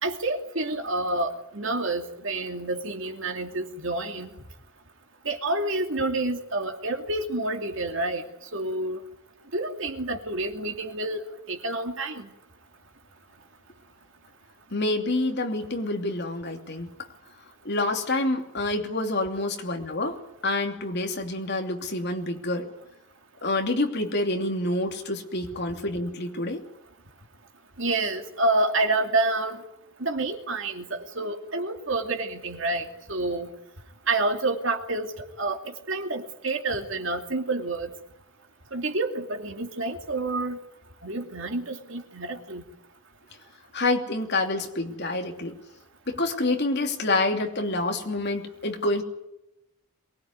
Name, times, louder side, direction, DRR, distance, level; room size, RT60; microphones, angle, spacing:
voice 1, 0.0-4.3 5.2-8.2 8.5-9.0 9.5-12.3 27.8-29.6 30.0-33.5 34.1-35.1 35.4-35.6 35.9-37.9 38.7-40.6 41.0-42.6, right 2 dB, 60° right, 4 dB, 2.7 m, -28 dB
voice 2, 14.7-16.9 17.6-20.2 20.4-22.7 23.4-26.6 43.7-45.6 46.1-49.0, left 2 dB, 50° left, 4 dB, 2.8 m, -27 dB
23.0 x 20.5 x 9.6 m, 0.88 s
head